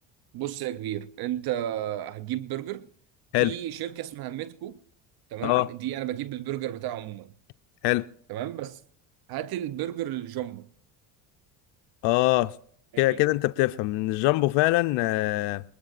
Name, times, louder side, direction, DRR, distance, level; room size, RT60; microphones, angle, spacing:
voice 1, 0.3-2.9 3.4-4.8 5.3-7.3 8.3-8.8 9.3-10.7 12.9-13.2, right 12 dB, 60° right, 0.6 m, -33 dB
voice 2, 12.0-12.6 13.0-15.6, left 19 dB, 70° left, 0.5 m, -23 dB
21.0 x 20.5 x 2.5 m
supercardioid pair, 90°, 42 cm